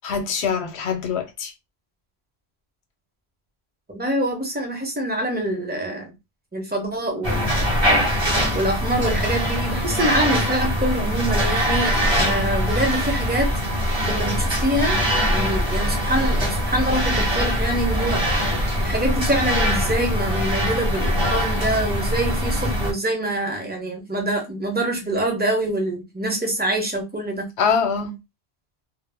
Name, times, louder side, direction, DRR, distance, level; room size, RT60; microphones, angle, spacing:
voice 1, 0.0-1.5 27.6-28.2, left 6 dB, 80° left, 0.9 m, -23 dB
voice 2, 3.9-6.1 6.5-7.8 8.5-13.5 14.0-15.0 15.3-18.2 18.8-27.5, right 1 dB, 10° right, 0.6 m, -25 dB
sound 1, 7.2-22.9, equal, 25° right, 0.9 m, -22 dB
2.1 x 2.0 x 3.3 m
omnidirectional pair, 1.1 m